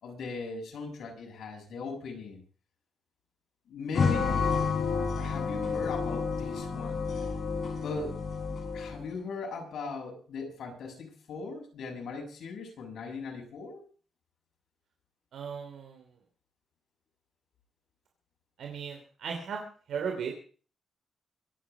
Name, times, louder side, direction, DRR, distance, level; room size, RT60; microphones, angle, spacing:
voice 1, 0.0-2.4 3.7-4.5 5.2-7.0 7.8-8.2 8.7-13.8, left 4 dB, 65° left, 2 dB, 6.8 m, -39 dB
sound 1, 3.9-9.1, left 5 dB, 45° left, 6.1 m, -30 dB
voice 2, 15.3-16.0 18.6-19.6 19.9-20.4, right 6 dB, 75° right, 2 dB, 3.1 m, -36 dB
24.5 x 9.3 x 5.0 m, 0.41 s
wide cardioid pair, 160°, 0 cm